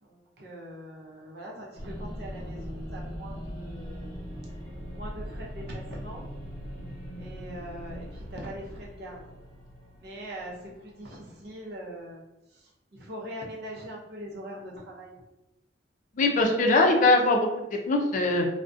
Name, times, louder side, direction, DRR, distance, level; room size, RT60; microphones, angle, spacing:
voice 1, 0.0-4.1 4.9-6.2 7.2-9.2 10.0-12.2 12.5-15.2, equal, 60° right, -2 dB, 0.6 m, -42 dB
sound 1, 1.8-11.2, equal, 15° left, 1.2 m, -40 dB
voice 2, 16.2-18.5, left 2 dB, 45° left, 2 dB, 0.4 m, -22 dB
2.4 x 2.1 x 2.5 m, 0.92 s
head